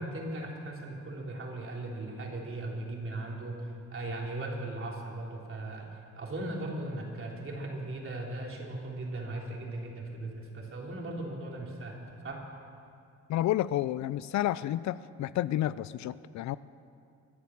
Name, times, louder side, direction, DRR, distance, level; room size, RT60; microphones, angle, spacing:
voice 1, 0.0-5.9 6.2-11.9 12.2-12.4, right 2 dB, 45° right, -1 dB, 3.6 m, -38 dB
voice 2, 13.3-16.6, left 13 dB, 65° left, 17 dB, 0.5 m, -30 dB
23.5 x 8.4 x 7.3 m, 2.5 s
cardioid pair, 90°, 30 cm